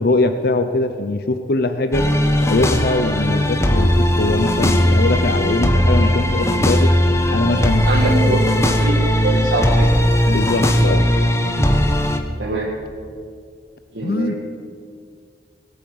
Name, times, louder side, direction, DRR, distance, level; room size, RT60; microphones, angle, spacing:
voice 1, 0.0-2.1 2.4-6.9 7.3-8.7 10.2-11.1 14.0-14.4, left 2 dB, 60° left, 8 dB, 0.7 m, -21 dB
sound 1, 1.9-12.2, equal, 15° left, 1.1 m, -17 dB
voice 2, 7.8-9.9 12.4-12.7 13.9-14.3, right 1 dB, 80° right, -5 dB, 2.3 m, -23 dB
20.0 x 8.8 x 7.9 m, 2.2 s
head